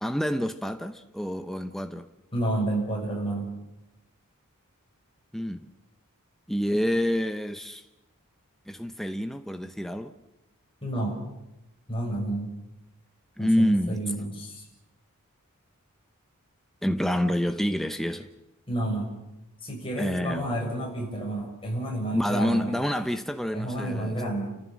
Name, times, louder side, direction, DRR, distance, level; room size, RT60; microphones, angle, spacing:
voice 1, 0.0-2.1 5.3-5.7 6.5-7.8 8.7-10.1 13.4-14.0 16.8-18.3 20.0-20.5 22.1-24.1, equal, ahead, 0.8 m, -27 dB
voice 2, 2.3-3.5 10.8-11.2 11.9-12.5 13.4-14.6 18.7-19.1 19.6-22.8 23.5-24.5, right 1 dB, 25° left, 7.2 m, -30 dB
29.5 x 15.0 x 7.5 m
head